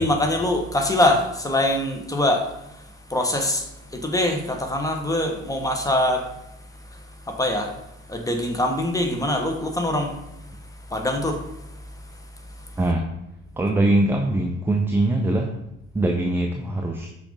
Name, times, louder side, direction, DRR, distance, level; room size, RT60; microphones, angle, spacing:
voice 1, 0.0-6.4 6.8-7.8 8.1-10.2 10.9-12.8, left 1 dB, 10° left, 3 dB, 0.7 m, -24 dB
voice 2, 12.8-13.1 13.6-15.5 15.9-17.1, right 1 dB, 5° right, 2 dB, 0.3 m, -22 dB
5.8 x 2.6 x 3.6 m, 0.83 s
figure-of-eight pair, 45°, 38 cm